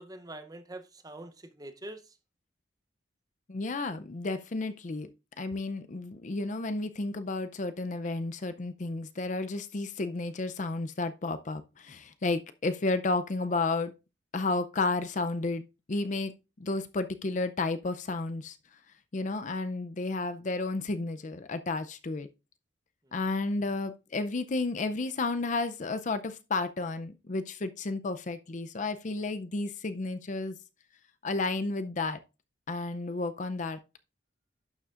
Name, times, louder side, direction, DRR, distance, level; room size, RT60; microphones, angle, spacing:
voice 1, 0.0-2.0 23.1-23.2, right 1 dB, 20° right, 0.7 m, -44 dB
voice 2, 3.5-5.1 5.4-13.9 14.3-16.3 16.6-18.6 19.1-22.3 23.1-30.6 31.2-32.2 32.7-33.8, left 3 dB, 40° left, 0.5 m, -32 dB
11.5 x 6.9 x 2.5 m
head